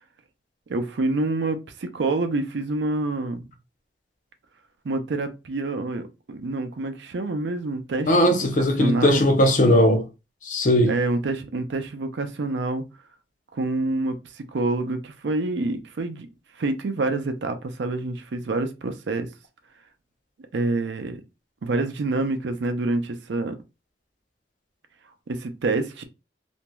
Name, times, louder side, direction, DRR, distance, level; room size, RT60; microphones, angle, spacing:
voice 1, 0.7-3.5 4.8-9.3 10.9-12.8 13.5-16.3 16.6-19.3 20.5-21.2 21.6-23.5 25.3-26.0, right 2 dB, 85° right, 0.5 m, -27 dB
voice 2, 8.1-10.0 10.4-10.9, left 1 dB, 45° left, 0.6 m, -18 dB
3.0 x 2.5 x 2.2 m
head